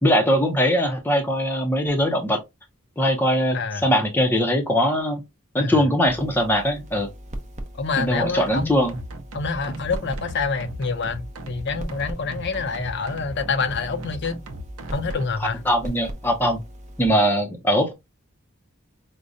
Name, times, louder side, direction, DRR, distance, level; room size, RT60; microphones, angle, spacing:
voice 1, 0.0-2.4 3.0-3.6 3.8-5.2 5.5-7.1 8.0-9.0 15.7-16.6 17.0-17.9, equal, 10° left, 0.6 m, -21 dB
voice 2, 3.5-3.9 5.6-5.8 7.7-8.7 9.3-14.4 14.9-15.7, left 4 dB, 55° left, 0.6 m, -27 dB
sound 1, 6.1-17.1, equal, 30° right, 0.6 m, -39 dB
sound 2, 8.5-15.3, right 1 dB, 80° right, 0.6 m, -37 dB
4.9 x 2.2 x 2.6 m
head